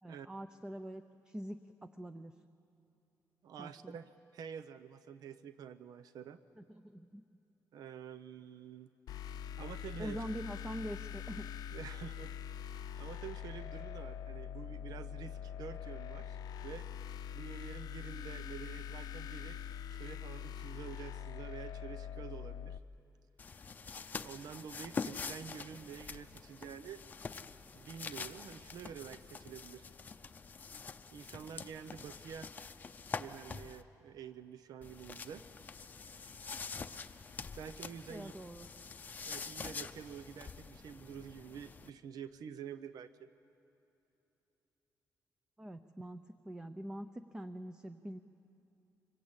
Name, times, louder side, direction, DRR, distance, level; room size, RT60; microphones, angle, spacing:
voice 1, 0.0-2.4 3.6-4.0 6.6-7.2 10.0-11.5 38.1-38.7 45.6-48.2, equal, 10° right, 9 dB, 0.5 m, -44 dB
voice 2, 3.4-6.4 7.7-8.9 9.6-10.2 11.7-16.9 17.3-19.6 19.9-22.8 24.2-27.0 27.7-29.9 31.1-32.5 33.2-35.4 37.1-37.2 37.6-38.3 39.3-43.3, right 8 dB, 80° right, 12 dB, 0.8 m, -48 dB
sound 1, 9.1-22.8, left 8 dB, 85° left, 0.6 m, -44 dB
sound 2, 23.4-33.8 34.8-41.9, left 5 dB, 25° left, 0.6 m, -45 dB
25.5 x 23.0 x 8.8 m, 2.9 s
wide cardioid pair, 175°, 6 cm